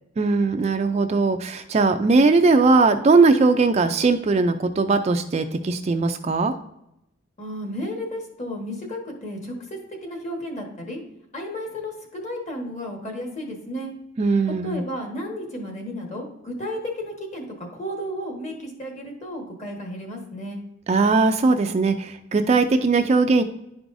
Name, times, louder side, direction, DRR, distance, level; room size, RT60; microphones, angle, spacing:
voice 1, 0.2-6.5 14.2-14.8 20.9-23.4, right 3 dB, 30° right, 8 dB, 0.3 m, -19 dB
voice 2, 7.4-11.0 11.3-13.9 14.6-20.6, equal, 35° left, 2 dB, 1.3 m, -33 dB
11.0 x 4.7 x 2.6 m, 0.83 s
head